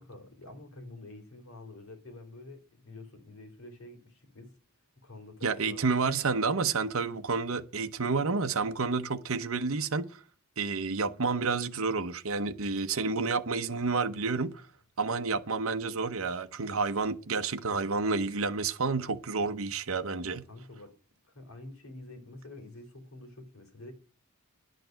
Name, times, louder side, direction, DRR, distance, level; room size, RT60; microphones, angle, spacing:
voice 1, 0.0-4.6 5.0-5.8 20.5-20.9 21.3-23.9, left 2 dB, 65° left, 3.3 m, -48 dB
voice 2, 5.4-10.1 10.6-14.6 15.0-20.4, right 4 dB, 65° right, 0.9 m, -30 dB
11.0 x 6.7 x 9.2 m
head